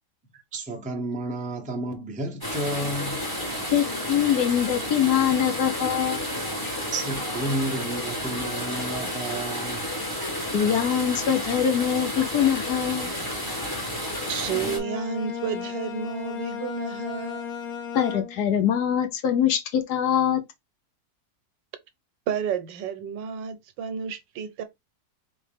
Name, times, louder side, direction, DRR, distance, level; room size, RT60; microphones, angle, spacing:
voice 1, 0.3-3.2 6.6-10.1, right 1 dB, 10° right, 0.4 m, -32 dB
sound 1, 2.4-14.8, left 1 dB, 15° left, 1.5 m, -31 dB
voice 2, 3.7-6.2 10.5-13.1 17.9-20.4, left 9 dB, 65° left, 1.2 m, -23 dB
voice 3, 14.3-17.5 22.3-24.6, right 7 dB, 85° right, 1.4 m, -31 dB
Bowed string instrument, 14.4-18.6, left 7 dB, 85° left, 1.7 m, -35 dB
4.2 x 3.4 x 3.4 m
omnidirectional pair, 2.0 m